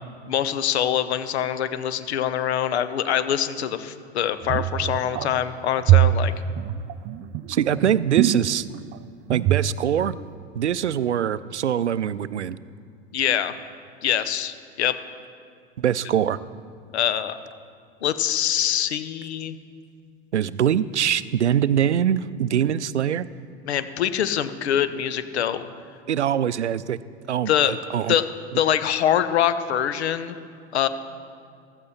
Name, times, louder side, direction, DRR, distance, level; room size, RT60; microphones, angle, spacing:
voice 1, 0.3-6.3 13.1-13.5 14.0-15.0 16.9-17.4 18.0-19.6 23.7-25.7 27.5-27.7 28.1-28.3 28.6-30.4 30.7-30.9, left 10 dB, 70° left, 13 dB, 0.9 m, -24 dB
sound 1, 4.4-5.4 5.8-8.9 9.3-9.8 10.1-10.2, right 13 dB, 35° right, 0.5 m, -21 dB
voice 2, 7.5-8.7 9.3-10.2 10.5-12.6 15.8-16.4 20.3-23.3 26.1-27.0 27.3-28.2, right 9 dB, 90° right, 17 dB, 0.5 m, -23 dB
15.0 x 14.5 x 4.3 m, 2.4 s
figure-of-eight pair, 80°, 33 cm